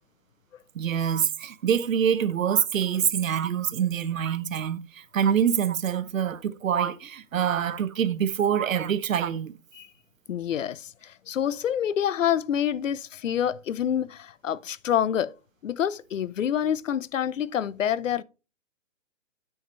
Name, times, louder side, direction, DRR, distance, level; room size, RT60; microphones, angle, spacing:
voice 1, 0.7-9.5, right 8 dB, 85° right, 0.9 m, -25 dB
voice 2, 10.3-15.3 15.6-18.2, left 9 dB, 75° left, 0.7 m, -27 dB
9.6 x 4.9 x 4.0 m
hypercardioid pair, 165°, 39 cm